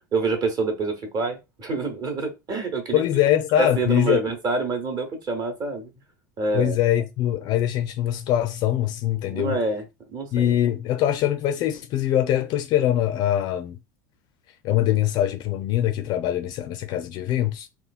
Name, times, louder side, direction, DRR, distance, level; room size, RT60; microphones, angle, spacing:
voice 1, 0.1-3.0 3.6-5.9 6.4-6.8 9.3-10.6, right 4 dB, 35° right, 1.0 m, -27 dB
voice 2, 2.9-4.2 6.5-9.6 10.3-13.8 14.6-17.7, left 12 dB, 45° left, 0.4 m, -23 dB
3.0 x 2.2 x 2.4 m
figure-of-eight pair, 75°, 10 cm